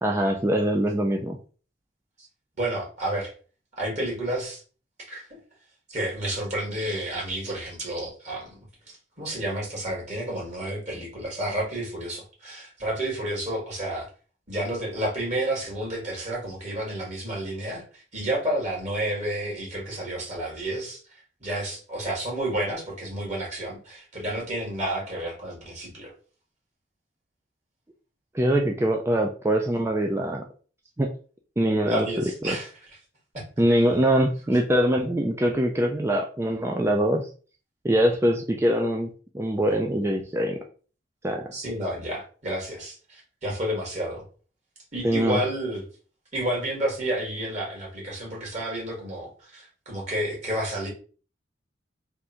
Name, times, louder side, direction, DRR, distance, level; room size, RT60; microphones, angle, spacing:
voice 1, 0.0-1.4 28.3-30.5 31.0-31.1 31.6-32.1 32.4-32.6 33.6-37.3 37.8-39.1 39.3-40.6 41.2-41.5 45.0-45.4, right 1 dB, 15° right, 2 dB, 0.4 m, -23 dB
voice 2, 2.6-3.3 3.8-4.6 5.1-5.3 5.9-8.5 9.2-14.1 14.5-26.1 31.8-32.7 41.5-44.2 44.9-45.8 46.3-50.9, right 1 dB, 40° right, -3 dB, 1.8 m, -30 dB
3.5 x 2.6 x 4.3 m, 0.39 s
head